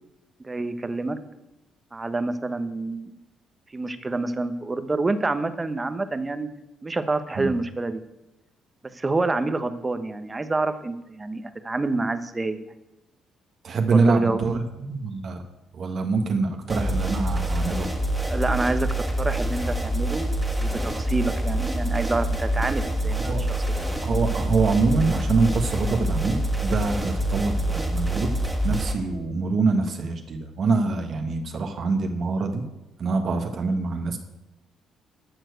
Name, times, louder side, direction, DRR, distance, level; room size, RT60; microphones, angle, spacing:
voice 1, 0.4-1.2 1.9-3.2 3.7-6.5 6.8-8.0 8.9-12.7 13.9-14.4 18.3-18.9 19.2-23.8, right 2 dB, 25° right, 10 dB, 1.0 m, -27 dB
voice 2, 13.6-15.4 15.7-17.9 23.2-23.4 24.0-28.3 28.6-32.6 33.0-34.2, right 4 dB, 55° right, 4 dB, 1.4 m, -24 dB
sound 1, 16.7-28.9, right 1 dB, 5° right, 2.0 m, -26 dB
13.0 x 4.6 x 8.0 m, 0.96 s
supercardioid pair, 70°, 0 cm